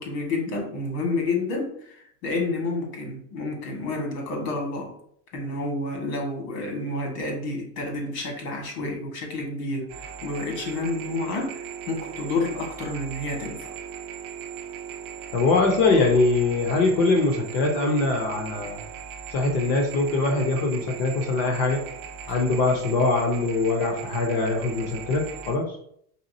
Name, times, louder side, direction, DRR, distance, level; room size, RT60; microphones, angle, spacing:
voice 1, 0.0-5.0 5.3-13.8 22.3-22.4, left 2 dB, 85° left, 1 dB, 1.5 m, -30 dB
sound 1, 9.9-25.6, right 7 dB, 55° right, 0.5 m, -38 dB
voice 2, 15.3-18.8 19.3-21.8 22.3-25.7, left 3 dB, 35° left, 3 dB, 0.4 m, -22 dB
4.1 x 3.3 x 2.6 m, 0.67 s
supercardioid pair, 165°, 47 cm